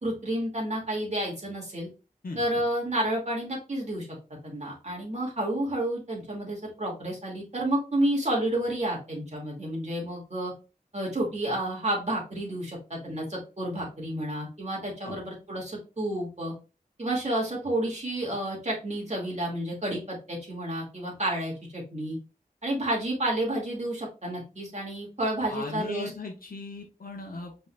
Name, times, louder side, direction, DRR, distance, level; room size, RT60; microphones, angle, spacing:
voice 1, 0.0-1.9 2.4-4.1 4.4-10.5 10.9-16.5 17.0-22.2 22.6-26.1, right 1 dB, 50° right, -3 dB, 2.2 m, -30 dB
voice 2, 2.2-2.6 15.0-15.2 25.5-27.7, left 3 dB, 75° left, 1 dB, 1.0 m, -38 dB
5.3 x 4.1 x 2.3 m, 0.30 s
wide cardioid pair, 70°, 15 cm